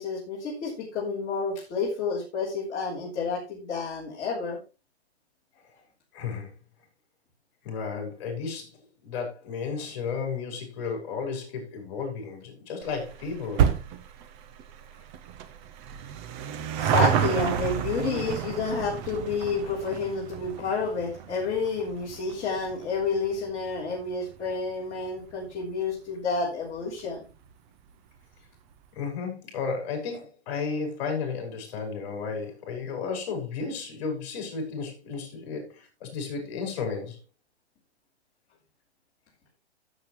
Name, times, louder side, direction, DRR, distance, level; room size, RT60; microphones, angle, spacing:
voice 1, 0.0-4.6 16.8-27.2, left 4 dB, 20° left, 3.4 m, -30 dB
voice 2, 6.1-6.5 7.6-8.8 9.0-13.7 28.9-37.2, left 5 dB, 40° left, 4.8 m, -33 dB
sound 1, 12.8-25.6 25.9-26.0 26.8-26.9 27.1-27.2 27.5-27.6, right 9 dB, 15° right, 0.4 m, -31 dB
13.5 x 7.6 x 3.1 m
hypercardioid pair, 140°, 34 cm